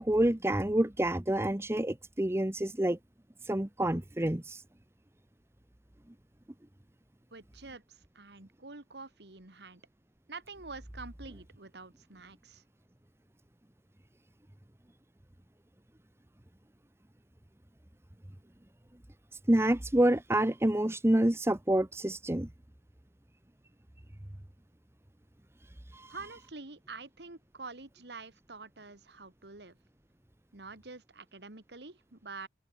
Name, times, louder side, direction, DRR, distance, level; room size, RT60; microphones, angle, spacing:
voice 1, 0.0-3.0 3.5-4.6 19.5-22.5 25.9-26.2, right 1 dB, 15° right, 0.9 m, -28 dB
voice 2, 7.3-7.8 8.2-9.8 10.3-12.6 26.1-29.7 30.5-32.5, right 3 dB, 70° right, 2.1 m, -47 dB
open air
head